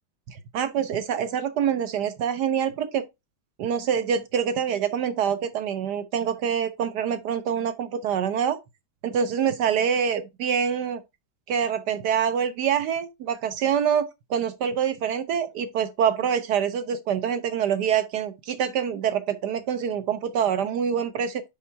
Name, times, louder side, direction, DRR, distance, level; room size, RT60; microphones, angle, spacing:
voice 1, 0.3-3.0 3.6-8.6 9.0-11.0 11.5-21.4, right 8 dB, 70° right, 1.1 m, -25 dB
5.7 x 5.4 x 4.4 m
omnidirectional pair, 2.1 m